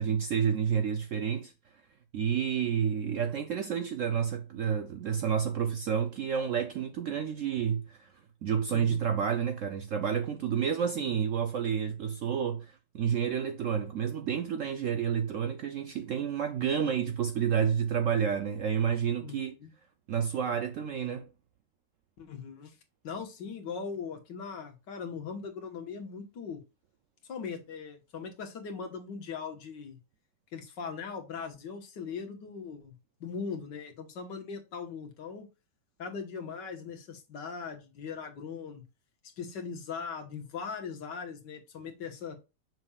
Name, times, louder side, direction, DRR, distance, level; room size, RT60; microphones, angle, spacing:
voice 1, 0.0-1.5 2.1-8.1 8.4-19.5 20.1-21.3, right 7 dB, 75° right, 0.7 m, -30 dB
voice 2, 19.2-19.7 22.2-22.8 23.0-26.6 27.3-30.0 30.5-33.0 33.2-35.5 36.0-38.8 39.4-42.4, left 5 dB, 85° left, 1.9 m, -40 dB
7.1 x 6.0 x 2.3 m
omnidirectional pair, 1.9 m